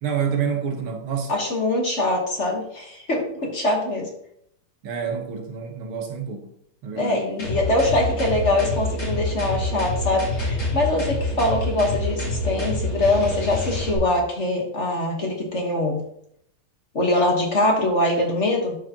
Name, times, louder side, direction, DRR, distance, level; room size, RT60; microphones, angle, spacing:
voice 1, 0.0-1.3 4.8-6.5 6.8-7.3, right 7 dB, 75° right, 2.1 m, -28 dB
voice 2, 1.3-4.1 6.9-16.0 16.9-18.8, left 2 dB, 40° left, 1.4 m, -23 dB
sound 1, 7.4-14.0, left 1 dB, 70° left, 4.0 m, -27 dB
12.0 x 4.8 x 2.9 m
omnidirectional pair, 2.4 m